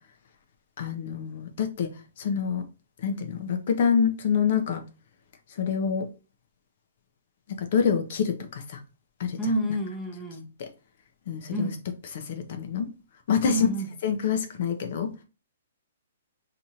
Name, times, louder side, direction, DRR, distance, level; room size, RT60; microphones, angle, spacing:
voice 1, 0.8-2.6 3.0-4.8 5.6-6.1 7.5-8.8 9.2-9.4 10.6-10.7 11.3-11.7 12.1-12.9 13.3-13.7 14.0-15.2, left 7 dB, 50° left, 0.6 m, -26 dB
voice 2, 9.4-10.5 11.5-11.9 13.4-13.9, right 1 dB, 5° left, 0.7 m, -29 dB
2.8 x 2.5 x 4.2 m
hypercardioid pair, 155°, 0 cm